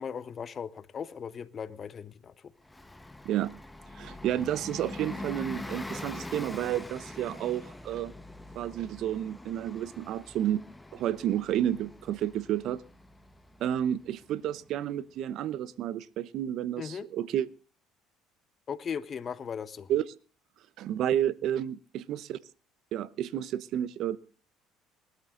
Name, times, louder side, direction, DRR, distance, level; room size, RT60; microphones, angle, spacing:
voice 1, 0.0-2.3 16.8-17.1 18.7-19.9, left 7 dB, 35° left, 1.1 m, -37 dB
Bus, 2.6-14.9, left 2 dB, 10° left, 1.2 m, -44 dB
voice 2, 4.0-8.1 8.5-10.6 10.9-12.8 13.6-17.5 19.9-20.0 20.8-22.4 22.9-24.2, right 11 dB, 60° right, 0.9 m, -31 dB
19.5 x 13.0 x 3.9 m
cardioid pair, 115°, 0 cm